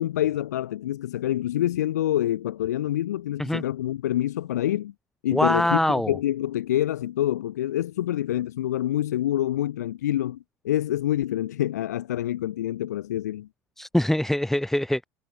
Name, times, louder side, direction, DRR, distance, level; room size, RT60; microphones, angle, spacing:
voice 1, 0.0-4.9 5.2-13.5, left 12 dB, 75° left, 7.8 m, -26 dB
voice 2, 5.3-6.2 13.8-15.0, left 1 dB, 5° left, 5.2 m, -23 dB
figure-of-eight pair, 70°, 9 cm